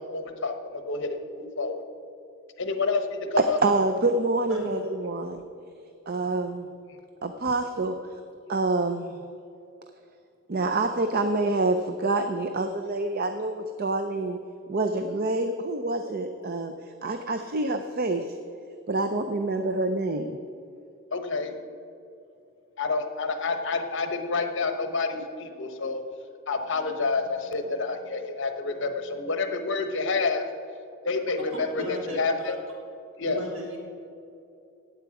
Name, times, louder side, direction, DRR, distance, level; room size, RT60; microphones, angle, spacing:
voice 1, 0.0-1.8 2.6-3.6 21.1-21.5 22.8-26.0 26.5-30.5 31.0-32.6 33.2-33.4, left 4 dB, 60° left, 7 dB, 1.0 m, -28 dB
voice 2, 3.6-5.4 6.1-6.7 7.2-8.0 8.5-9.2 10.5-14.4 14.7-16.7 17.0-18.3 18.9-20.4, right 2 dB, 45° right, 8 dB, 0.5 m, -27 dB
voice 3, 31.5-32.5 33.3-33.8, equal, 75° right, -2 dB, 3.3 m, -36 dB
17.0 x 8.0 x 4.8 m, 2.7 s
head